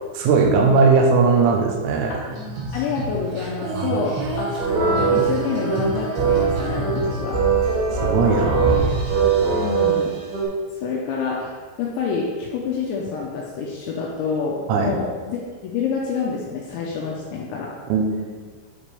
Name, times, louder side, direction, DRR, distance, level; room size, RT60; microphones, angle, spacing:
voice 1, 0.2-2.2 3.8-4.0 7.9-9.1 14.7-15.0 17.9-18.3, right 4 dB, 85° right, 2 dB, 3.5 m, -19 dB
Female singing, 2.3-7.7, right 1 dB, 65° right, 3.0 m, -30 dB
voice 2, 2.7-7.4 9.5-10.1 10.8-17.7, left 5 dB, 85° left, -3 dB, 2.7 m, -28 dB
sound 1, 4.6-10.4, right 5 dB, 45° right, 2.8 m, -21 dB
8.9 x 5.1 x 3.3 m, 1.5 s
omnidirectional pair, 5.9 m